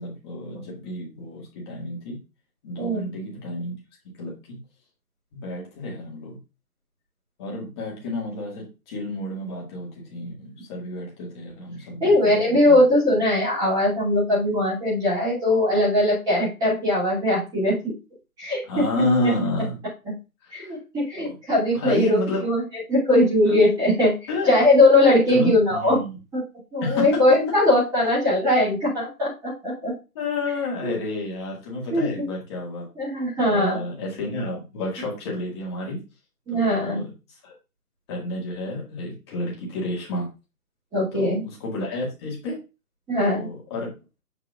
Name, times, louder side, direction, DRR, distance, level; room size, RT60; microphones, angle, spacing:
voice 1, 0.0-2.2 2.6-3.7 4.1-4.6 5.3-6.4 7.4-12.8 18.6-19.8 20.4-20.8 21.7-22.5 23.5-23.6 24.3-24.5 25.3-26.2 26.8-27.1 30.1-32.8 33.4-36.0 36.5-37.1 37.4-37.5 38.1-40.3 41.1-42.6 43.3-43.9, left 1 dB, 15° left, -3 dB, 1.9 m, -30 dB
voice 2, 12.0-17.9 18.4-18.8 20.5-22.6 22.9-24.1 24.5-26.0 26.3-26.4 26.7-29.9 30.8-30.9 31.9-32.3 33.0-33.8 36.5-37.0 40.9-41.4 43.1-43.5, left 1 dB, 10° right, -9 dB, 2.6 m, -20 dB
7.7 x 5.6 x 2.4 m, 0.29 s
hypercardioid pair, 160°, 46 cm